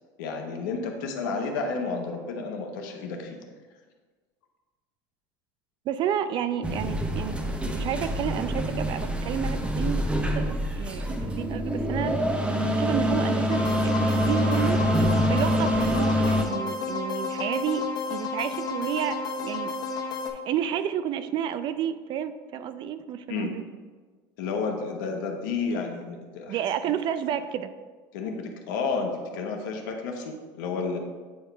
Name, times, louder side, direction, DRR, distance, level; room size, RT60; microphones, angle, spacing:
voice 1, 0.2-3.4 23.3-23.5 24.4-26.6 28.1-31.0, left 4 dB, 80° left, 3 dB, 1.0 m, -31 dB
voice 2, 5.9-7.4 7.7-10.1 10.3-12.2 12.7-19.7 20.3-23.6 26.5-27.7, right 9 dB, 50° right, 12 dB, 0.4 m, -31 dB
sound 1, 6.6-16.4, equal, 10° right, 0.8 m, -25 dB
sound 2, 13.5-20.3, left 3 dB, 40° left, 1.0 m, -32 dB
8.6 x 3.0 x 4.6 m, 1.4 s
supercardioid pair, 110°, 11 cm